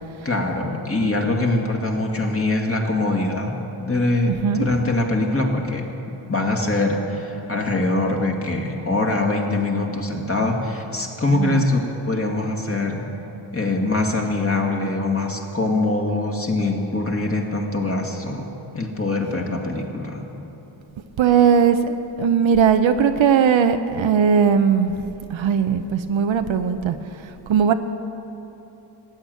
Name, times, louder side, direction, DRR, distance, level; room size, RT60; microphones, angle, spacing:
voice 1, 0.2-5.9 6.3-11.8 12.1-13.0 13.5-20.2, left 2 dB, 30° left, 1 dB, 2.0 m, -23 dB
voice 2, 4.3-4.7 11.3-11.6 21.2-24.9 25.3-27.0 27.5-27.7, right 7 dB, 75° right, 8 dB, 0.7 m, -18 dB
14.5 x 8.6 x 7.7 m, 3.0 s
cardioid pair, 65°, 47 cm